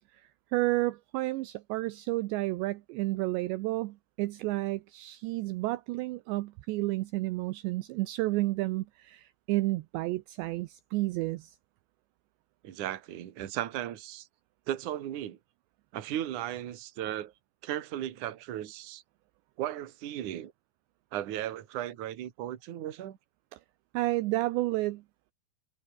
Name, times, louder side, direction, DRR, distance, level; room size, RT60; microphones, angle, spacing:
voice 1, 0.5-11.6 23.5-23.6 23.9-25.0, right 19 dB, 80° right, 2.8 m, -31 dB
voice 2, 12.6-14.3 14.7-15.4 15.9-17.3 17.6-19.0 19.6-20.5 21.1-23.2, right 12 dB, 55° right, 2.7 m, -36 dB
omnidirectional pair, 5.4 m